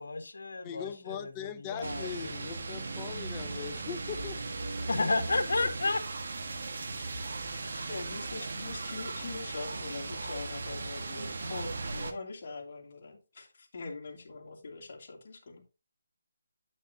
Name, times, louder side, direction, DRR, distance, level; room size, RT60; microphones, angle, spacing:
voice 1, 0.0-2.1 4.9-6.0 7.6-7.8, left 3 dB, 75° left, 1.6 m, -32 dB
voice 2, 0.6-4.4 5.6-5.7, left 8 dB, 20° left, 0.6 m, -40 dB
sound 1, 1.8-12.1, right 3 dB, 55° right, 1.4 m, -37 dB
voice 3, 7.8-15.6, left 3 dB, 45° left, 2.6 m, -42 dB
10.0 x 6.2 x 2.7 m
figure-of-eight pair, 160°, 0 cm